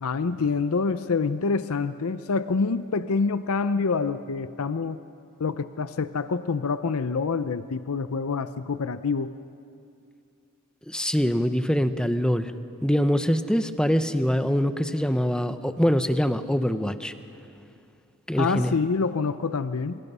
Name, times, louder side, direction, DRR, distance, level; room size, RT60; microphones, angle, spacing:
voice 1, 0.0-5.0 5.4-9.3 18.4-20.0, left 4 dB, 70° left, 12 dB, 0.6 m, -26 dB
voice 2, 10.9-12.5 12.8-17.1 18.3-18.7, equal, 5° left, 10 dB, 0.7 m, -24 dB
27.5 x 24.0 x 5.5 m, 2.5 s
head